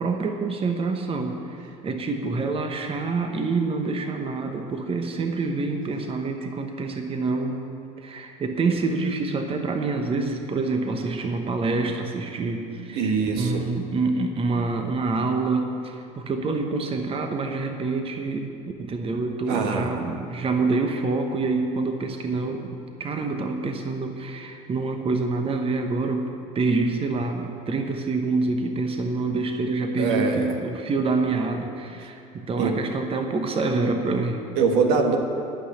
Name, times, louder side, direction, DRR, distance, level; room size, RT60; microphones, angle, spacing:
voice 1, 0.0-7.7 8.0-34.4, right 3 dB, 30° right, 5 dB, 1.0 m, -27 dB
voice 2, 12.9-13.6 19.5-19.9 30.0-30.5 32.0-32.1 32.6-32.7 34.6-35.2, right 5 dB, 70° right, 4 dB, 1.3 m, -23 dB
11.5 x 5.8 x 8.4 m, 2.6 s
hypercardioid pair, 80°, 18 cm